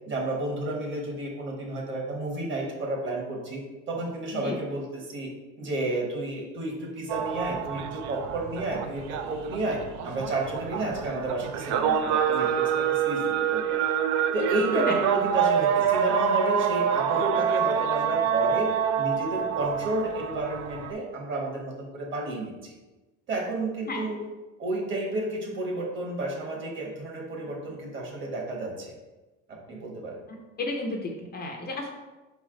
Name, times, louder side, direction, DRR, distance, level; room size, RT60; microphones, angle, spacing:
voice 1, 0.0-5.3 5.6-13.2 13.5-13.8 14.3-18.7 19.0-22.8 23.3-24.2 24.6-28.9 29.5-30.2, right 2 dB, 35° right, 0 dB, 1.2 m, -31 dB
sound 1, 7.1-20.9, right 8 dB, 60° right, 0.4 m, -27 dB
voice 2, 30.6-31.9, left 2 dB, 30° left, 1 dB, 0.5 m, -32 dB
4.3 x 3.2 x 3.7 m, 1.1 s
cardioid pair, 130°, 33 cm